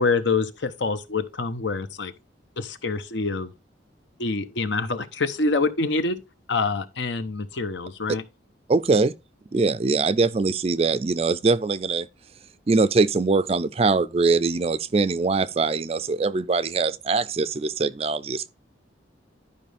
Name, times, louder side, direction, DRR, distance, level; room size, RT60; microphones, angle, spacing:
voice 1, 0.0-2.1 2.6-3.5 4.2-6.2 6.5-8.2, left 3 dB, 70° left, 0.9 m, -26 dB
voice 2, 8.7-9.1 9.5-12.1 12.7-18.5, right 4 dB, 30° right, 0.4 m, -22 dB
11.5 x 5.4 x 3.4 m
head